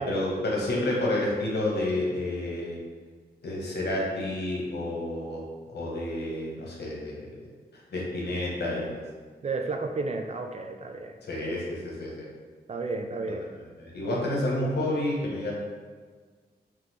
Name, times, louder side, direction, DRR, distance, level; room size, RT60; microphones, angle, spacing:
voice 1, 0.0-2.8 3.4-5.4 5.7-7.3 7.9-9.0 11.2-12.3 13.8-15.5, left 1 dB, 75° left, -3 dB, 1.1 m, -29 dB
voice 2, 9.4-11.2 12.7-13.4, right 3 dB, 40° right, 4 dB, 0.4 m, -32 dB
3.7 x 3.2 x 3.4 m, 1.5 s
cardioid pair, 80°, 17 cm